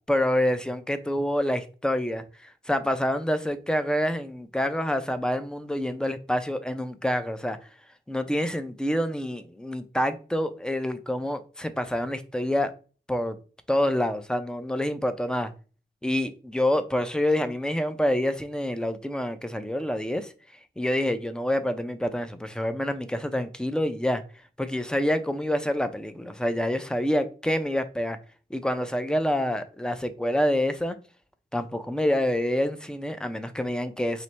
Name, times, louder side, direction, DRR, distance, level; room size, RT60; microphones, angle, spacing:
voice 1, 0.1-7.6 8.1-12.7 13.1-13.4 13.7-15.5 16.0-20.3 20.8-24.2 24.6-28.2 28.5-31.0 31.5-34.2, left 1 dB, 5° left, 10 dB, 0.4 m, -27 dB
4.2 x 3.0 x 3.2 m, 0.37 s
wide cardioid pair, 140°, 17 cm